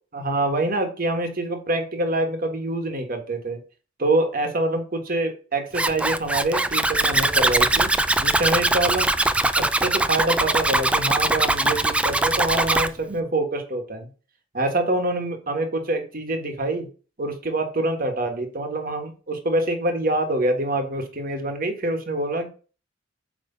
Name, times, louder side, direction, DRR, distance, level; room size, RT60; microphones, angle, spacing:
voice 1, 0.1-3.6 4.0-7.9 8.2-9.1 9.6-14.1 14.5-16.9 17.2-22.5, right 2 dB, 50° right, 5 dB, 1.5 m, -25 dB
Zipper (clothing), 5.7-12.9, right 2 dB, 5° right, 0.3 m, -21 dB
8.4 x 3.3 x 5.5 m, 0.37 s
head